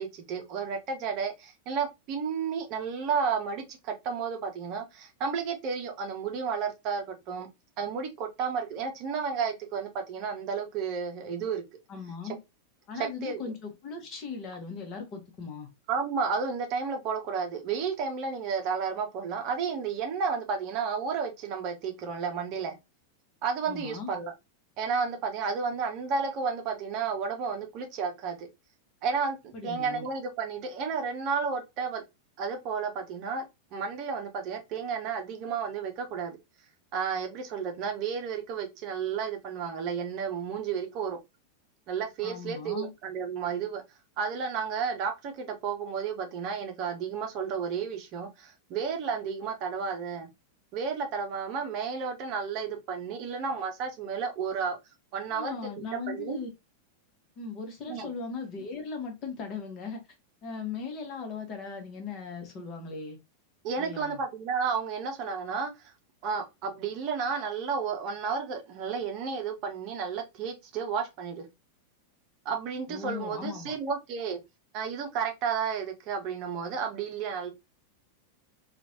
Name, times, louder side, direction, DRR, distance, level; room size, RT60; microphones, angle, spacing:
voice 1, 0.0-7.5 7.8-11.6 13.0-13.4 15.9-22.8 23.4-24.3 24.8-28.5 29.0-32.0 32.4-33.4 33.7-36.4 36.9-41.2 41.9-43.8 44.2-50.3 50.7-54.8 55.1-56.4 57.9-58.1 63.6-65.9 66.2-71.5 72.4-74.4 74.7-77.5, right 6 dB, 40° right, 0.7 m, -32 dB
voice 2, 11.9-12.4 12.9-15.7 23.7-24.1 29.5-30.1 42.2-42.9 55.3-56.5 57.4-60.0 60.4-63.2 63.8-64.2 72.9-73.8, left 5 dB, 35° left, 1.1 m, -38 dB
3.0 x 2.4 x 2.6 m
figure-of-eight pair, 90°, 0 cm